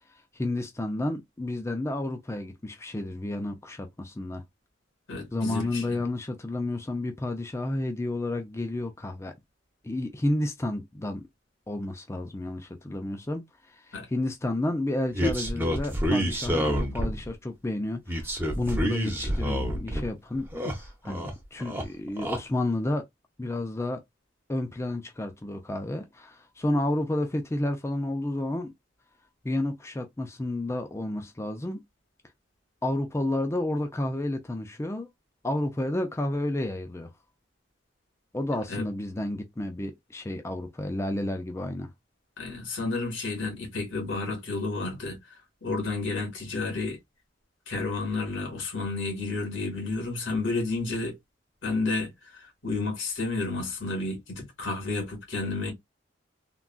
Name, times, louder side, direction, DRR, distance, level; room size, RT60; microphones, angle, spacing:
voice 1, 0.3-4.4 5.3-9.3 9.8-11.3 11.7-23.1 23.4-24.0 24.5-28.7 29.4-31.8 32.8-35.1 35.4-37.1 38.3-41.9, left 1 dB, 15° left, 0.4 m, -31 dB
voice 2, 5.1-6.0 13.9-14.1 38.7-38.8 42.4-45.2 45.6-47.0 47.7-51.2 51.6-52.1 52.4-55.7, left 3 dB, 90° left, 1.8 m, -31 dB
sound 1, 15.1-17.3 18.1-20.1 20.4-21.3 21.6-22.4, equal, 10° right, 0.7 m, -28 dB
3.7 x 2.3 x 2.3 m
head